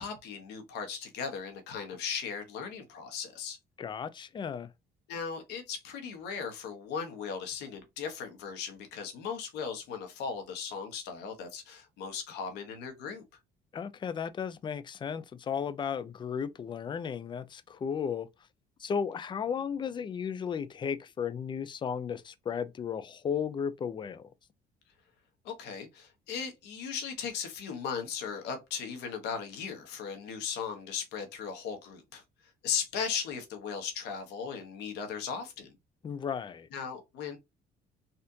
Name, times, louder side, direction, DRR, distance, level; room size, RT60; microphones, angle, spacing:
voice 1, 0.0-3.6 5.1-13.2 25.4-32.2 32.6-35.7 36.7-37.4, left 6 dB, 85° left, 1.2 m, -37 dB
voice 2, 3.8-4.7 13.7-18.3 18.8-24.3 36.0-36.7, left 7 dB, 30° left, 0.4 m, -34 dB
4.2 x 2.5 x 2.7 m
cardioid pair, 110°, 17 cm